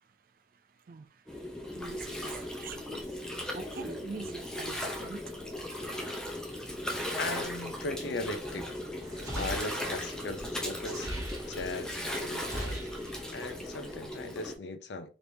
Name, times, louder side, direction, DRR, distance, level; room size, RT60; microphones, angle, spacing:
voice 1, 0.0-6.2, right 4 dB, 50° right, 0.4 m, -47 dB
Gurgling, 1.3-14.5, left 1 dB, 5° left, 0.6 m, -37 dB
voice 2, 7.2-8.7 9.4-11.1 11.5-12.8 13.3-15.1, left 2 dB, 75° left, 0.6 m, -38 dB
sound 1, 9.0-11.9 12.2-13.6, right 1 dB, 20° right, 0.9 m, -40 dB
3.5 x 3.0 x 2.6 m
head